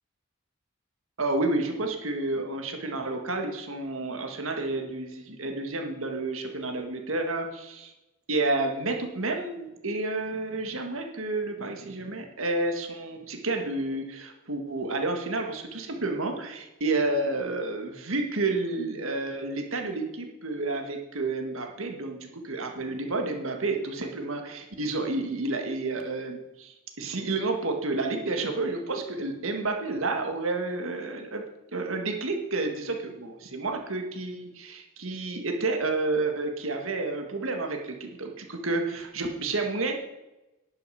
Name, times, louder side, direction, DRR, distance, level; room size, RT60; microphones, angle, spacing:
voice 1, 1.2-7.9 8.3-31.5 31.7-40.0, right 2 dB, 75° right, 4 dB, 1.7 m, -30 dB
11.0 x 6.9 x 6.4 m, 0.96 s
head